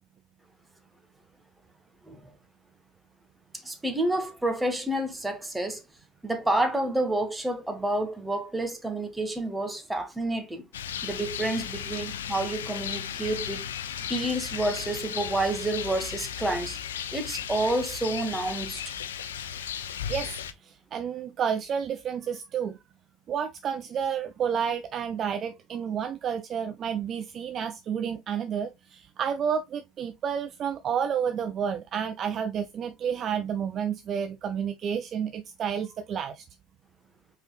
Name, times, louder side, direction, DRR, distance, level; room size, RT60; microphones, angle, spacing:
voice 1, 3.5-5.8 6.2-10.6 11.0-13.7 14.1-16.8 17.1-18.9, right 1 dB, 10° right, 1.6 m, -29 dB
Rain, 10.7-20.5, left 9 dB, 80° left, 0.5 m, -35 dB
voice 2, 20.1-22.8 23.3-36.5, right 7 dB, 40° right, 0.5 m, -30 dB
5.1 x 4.3 x 2.4 m
hypercardioid pair, 80°, 0 cm